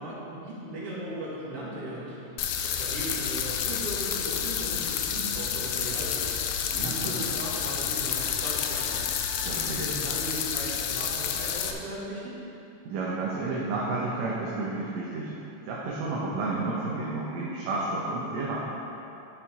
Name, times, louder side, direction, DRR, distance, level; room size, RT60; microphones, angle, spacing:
voice 1, 0.0-12.3, right 1 dB, 50° right, -8 dB, 3.0 m, -37 dB
sound 1, 2.4-11.7, left 8 dB, 75° left, 1.8 m, -30 dB
voice 2, 6.7-7.3 9.4-9.8 12.9-15.3 15.7-18.6, right 3 dB, 70° right, -6 dB, 2.2 m, -31 dB
11.0 x 7.1 x 3.7 m, 2.9 s
omnidirectional pair, 3.4 m